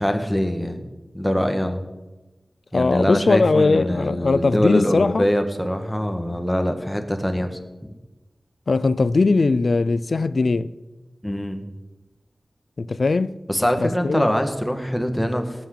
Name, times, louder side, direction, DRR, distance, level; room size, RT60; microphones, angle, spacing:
voice 1, 0.0-1.9 2.7-7.6 11.2-11.7 13.5-15.7, equal, 5° left, 1.7 m, -23 dB
voice 2, 2.7-5.3 8.7-10.7 12.8-13.3 13.8-14.3, left 3 dB, 70° left, 0.5 m, -20 dB
18.5 x 6.2 x 8.5 m
wide cardioid pair, 90°, 0 cm